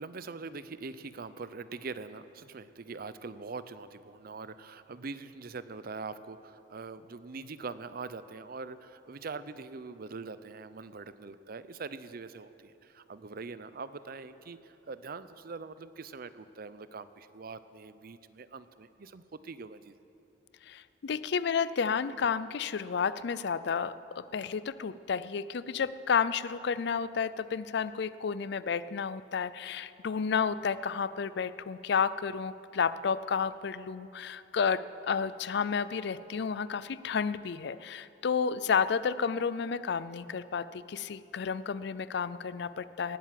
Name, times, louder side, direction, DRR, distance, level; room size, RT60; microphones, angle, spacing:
voice 1, 0.0-19.9, right 4 dB, 55° right, 14 dB, 0.6 m, -43 dB
voice 2, 20.6-43.2, left 6 dB, 65° left, 16 dB, 0.5 m, -31 dB
18.5 x 9.1 x 7.6 m, 2.8 s
head